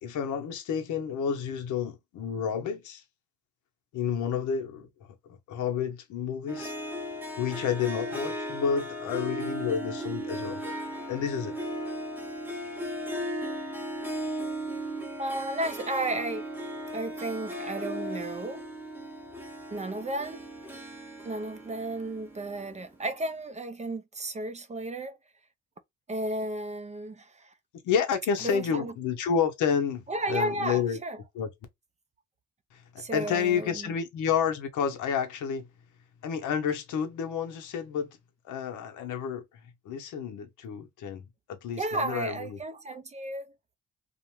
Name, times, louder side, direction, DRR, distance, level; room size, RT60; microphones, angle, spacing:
voice 1, 0.0-3.0 3.9-4.9 5.3-6.7 7.4-10.6 11.1-11.6 27.8-31.0 31.3-31.5 32.7-35.7 36.2-38.2 38.4-39.4 39.8-42.6, left 7 dB, 80° left, 0.7 m, -30 dB
Harp, 6.5-23.0, equal, 5° right, 0.8 m, -36 dB
voice 2, 15.2-16.4 16.9-18.7 19.7-20.5 21.2-25.2 26.1-27.5 28.4-28.9 30.1-31.2 33.0-33.9 41.8-43.5, right 1 dB, 25° right, 0.4 m, -33 dB
2.5 x 2.1 x 3.0 m
cardioid pair, 90°, 30 cm